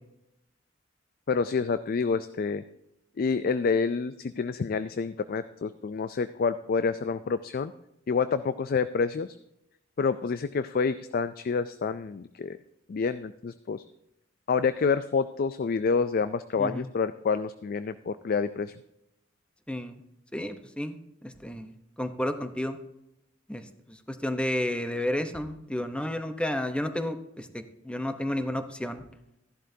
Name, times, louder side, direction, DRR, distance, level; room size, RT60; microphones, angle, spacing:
voice 1, 1.3-2.6 3.2-7.7 8.1-9.4 10.0-12.6 12.9-13.8 14.5-18.7, left 5 dB, 50° left, 12 dB, 0.4 m, -28 dB
voice 2, 19.7-20.0 20.3-22.8 23.5-23.6 23.9-27.5 27.8-29.0, left 1 dB, 5° left, 8 dB, 0.8 m, -31 dB
14.5 x 11.5 x 2.7 m, 0.83 s
head